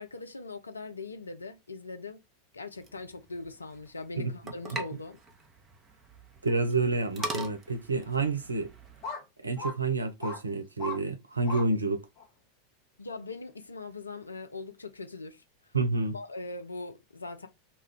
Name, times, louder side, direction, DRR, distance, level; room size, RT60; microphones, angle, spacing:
voice 1, 0.0-2.2 2.5-5.2 13.0-15.4 16.1-17.5, left 3 dB, 80° left, 0.4 m, -41 dB
sound 1, 2.7-9.1, right 2 dB, 25° right, 0.7 m, -42 dB
voice 2, 6.4-8.7 9.4-12.0 15.7-16.2, right 3 dB, 80° right, 0.4 m, -29 dB
sound 2, 7.2-7.3 8.0-8.1 9.0-9.2 9.6-9.7 10.2-10.4 10.8-11.0 11.4-11.7 12.2-12.3, left 2 dB, 40° left, 0.8 m, -37 dB
2.2 x 2.2 x 3.5 m
figure-of-eight pair, 85°, 0 cm